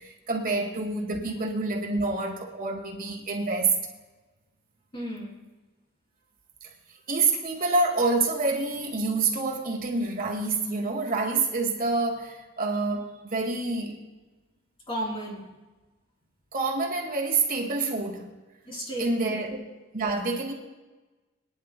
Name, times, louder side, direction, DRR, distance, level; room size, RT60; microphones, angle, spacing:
voice 1, 0.0-3.8 6.6-6.7 7.1-14.0 16.5-18.3 19.0-19.6 19.9-20.5, right 3 dB, 45° right, 0 dB, 1.9 m, -27 dB
voice 2, 4.9-5.3 14.9-15.4 18.7-19.5, equal, 25° left, -2 dB, 3.2 m, -34 dB
26.0 x 10.0 x 2.2 m, 1.2 s
head